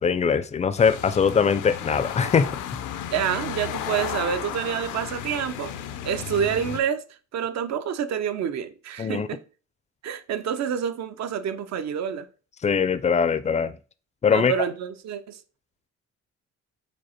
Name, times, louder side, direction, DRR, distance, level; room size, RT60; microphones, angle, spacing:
voice 1, 0.0-2.5 9.0-9.3 12.6-13.7 14.2-14.5, left 6 dB, 25° left, 0.4 m, -21 dB
sound 1, 0.8-6.8, left 10 dB, 80° left, 0.6 m, -34 dB
voice 2, 3.1-5.8 6.0-7.0 7.3-9.4 10.0-12.3 14.3-15.4, right 8 dB, 65° right, 0.6 m, -28 dB
5.1 x 2.0 x 4.3 m
cardioid pair, 90°, 30 cm